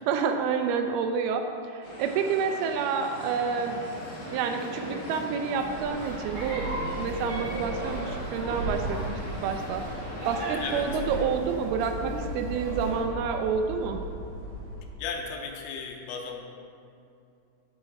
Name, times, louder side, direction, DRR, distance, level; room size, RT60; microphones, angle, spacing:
voice 1, 0.1-3.8 4.3-6.7 7.0-14.0, right 6 dB, 85° right, 5 dB, 2.2 m, -29 dB
sound 1, 1.8-11.2, equal, 60° left, 4.1 m, -42 dB
sound 2, 3.2-13.0, right 1 dB, 50° right, 3.4 m, -38 dB
sound 3, 5.5-15.0, right 1 dB, 70° right, 3.4 m, -37 dB
voice 2, 15.0-16.4, left 5 dB, 90° left, 1 dB, 3.1 m, -35 dB
8.5 x 8.1 x 4.6 m, 2.6 s
omnidirectional pair, 5.1 m